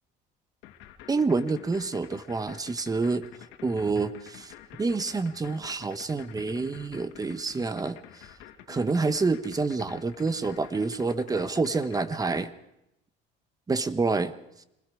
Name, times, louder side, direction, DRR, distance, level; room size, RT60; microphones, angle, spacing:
sound 1, 0.6-12.5, left 12 dB, 85° left, 2.5 m, -49 dB
voice 1, 1.1-3.3 3.6-8.3 8.7-12.5 13.7-14.3, right 3 dB, 20° right, 13 dB, 1.2 m, -28 dB
26.5 x 20.5 x 4.9 m, 0.86 s
cardioid pair, 115°, 19 cm